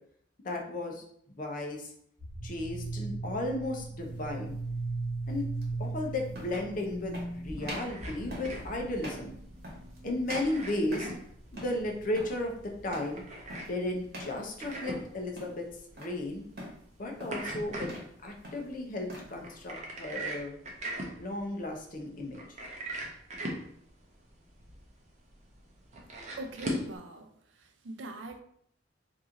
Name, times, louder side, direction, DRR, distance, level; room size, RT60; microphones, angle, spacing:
voice 1, 0.4-1.0 1.3-1.9 2.4-4.6 5.3-5.5 5.8-9.4 10.0-11.1 11.5-12.5 12.8-13.2 13.6-15.7 15.9-16.4 17.0-17.9 18.2-20.6 21.2-22.6, left 1 dB, 45° left, 2 dB, 0.7 m, -34 dB
sound 1, 2.2-13.4, right 2 dB, 10° right, 1.2 m, -39 dB
sound 2, 4.1-4.3 5.6-5.7 6.3-6.7 7.1-7.3 7.6-8.0 8.3-8.6 9.0-9.3 9.6-10.0 10.3-11.2 11.5-11.8 12.1-12.4 12.9-13.2 13.5-13.8 14.1-14.4 14.7-15.1 15.3-16.2 16.6-16.8 17.2-17.5 17.8-18.1 18.4-19.3, equal, 55° right, 1.1 m, -43 dB
sound 3, 7.4-27.0, right 1 dB, 40° right, 0.7 m, -41 dB
voice 2, 26.4-28.4, right 2 dB, 80° right, 6 dB, 0.5 m, -43 dB
3.0 x 2.6 x 3.7 m, 0.67 s
head